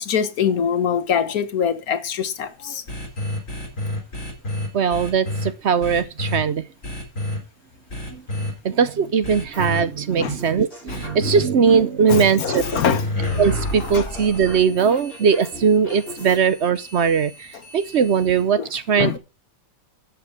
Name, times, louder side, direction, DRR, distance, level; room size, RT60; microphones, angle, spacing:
voice 1, 0.0-2.8 10.2-10.3 12.1-13.0 13.9-14.0 18.6-18.7 19.0-19.2, left 7 dB, 85° left, 1.6 m, -23 dB
sound 1, 2.9-5.5 5.8-6.4 6.8-7.4 7.9-8.5 9.2-9.8 10.9-11.4 12.6-18.4, left 1 dB, 60° left, 4.2 m, -30 dB
voice 2, 4.7-6.6 8.1-8.2 8.6-12.6 13.4-19.2, right 6 dB, 55° right, 1.0 m, -20 dB
sound 2, 9.5-9.9 10.4-11.8 12.1-13.3 13.8-16.4, left 1 dB, 45° left, 6.2 m, -39 dB
11.0 x 8.1 x 4.9 m
omnidirectional pair, 1.5 m